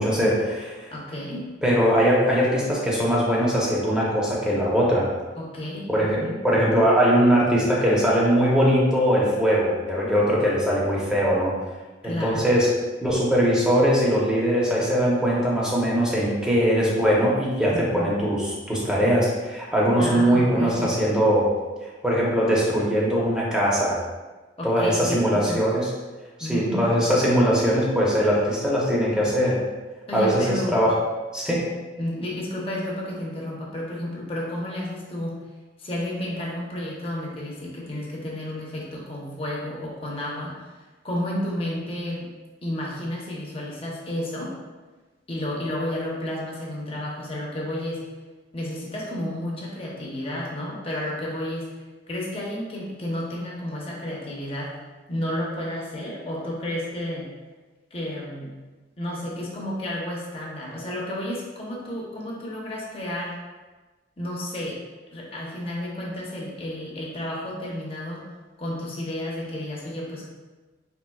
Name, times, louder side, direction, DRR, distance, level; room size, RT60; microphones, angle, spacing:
voice 1, 0.0-0.8 1.6-5.1 5.9-11.5 12.0-12.7 13.0-21.5 22.0-24.0 24.6-25.9 26.4-29.6 30.1-31.0 31.3-31.6, equal, 5° right, -6 dB, 0.8 m, -21 dB
voice 2, 0.9-1.5 5.4-6.4 12.0-12.5 17.7-18.1 20.0-20.9 24.6-25.6 26.4-26.9 30.1-30.8 32.0-35.4 35.8-40.6 41.0-42.3 42.6-44.5 45.3-48.0 48.5-51.7 52.1-54.7 55.1-57.3 57.9-58.5 59.0-63.4 64.2-64.8 65.1-68.2 68.6-70.3, left 1 dB, 30° left, -4 dB, 0.8 m, -31 dB
4.4 x 3.3 x 2.3 m, 1.3 s
head